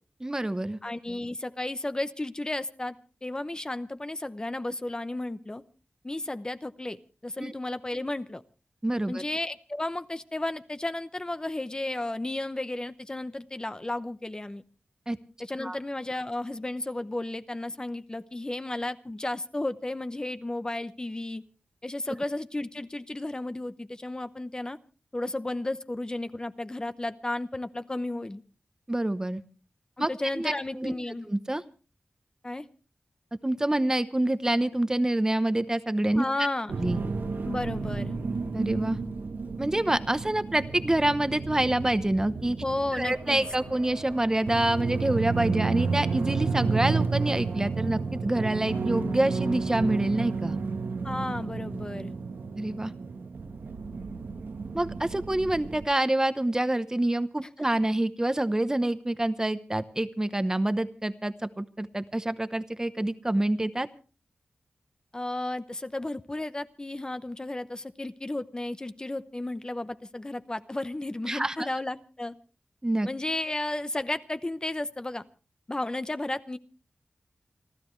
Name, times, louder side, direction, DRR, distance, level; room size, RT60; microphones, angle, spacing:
voice 1, 0.2-0.8 7.4-7.5 8.8-9.2 15.1-15.2 15.6-15.8 28.9-29.4 30.0-30.1 30.4-30.9 31.3-31.6 33.4-36.3 36.8-37.0 38.5-39.0 39.6-42.6 42.9-50.6 52.6-52.9 54.7-63.9 71.3-71.7 72.8-73.1, right 1 dB, 20° right, 12 dB, 0.9 m, -27 dB
voice 2, 0.8-3.0 3.2-5.6 6.0-8.4 9.1-14.6 15.4-21.4 21.8-24.8 25.1-28.4 30.0-31.3 32.4-32.7 36.1-36.7 37.4-38.1 42.6-43.5 51.0-52.1 65.1-72.4 73.0-75.2 75.7-76.6, left 2 dB, 25° left, 11 dB, 0.8 m, -33 dB
sound 1, 36.7-55.8, right 4 dB, 90° right, 1.3 m, -32 dB
29.0 x 13.0 x 3.2 m, 0.35 s
wide cardioid pair, 90°, 3 cm